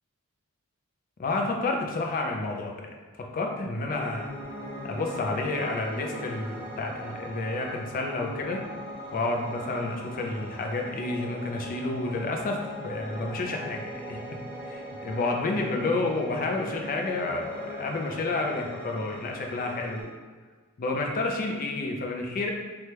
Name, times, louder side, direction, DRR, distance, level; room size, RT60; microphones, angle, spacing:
voice 1, 1.2-2.7 3.2-4.3 4.8-8.6 9.1-12.6 12.8-14.2 14.6-20.1 20.8-22.5, left 2 dB, 40° left, 1 dB, 0.4 m, -30 dB
Piano, 3.9-20.0, equal, 5° left, 1.0 m, -40 dB
3.2 x 2.1 x 2.9 m, 1.4 s
head